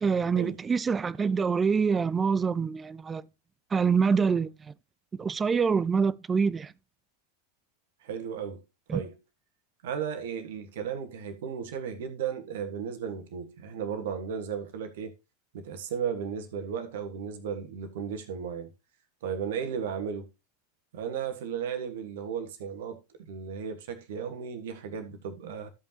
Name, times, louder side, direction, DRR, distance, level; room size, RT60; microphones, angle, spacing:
voice 1, 0.0-3.2 3.7-4.5 5.2-6.7 8.9-9.0, right 5 dB, 15° right, 0.4 m, -25 dB
voice 2, 8.0-8.6 8.9-9.1 9.8-15.1 15.5-18.7 19.2-20.3 20.9-23.0 23.3-25.7, right 7 dB, 55° right, 1.5 m, -35 dB
14.0 x 5.5 x 2.9 m
figure-of-eight pair, 90°, 0 cm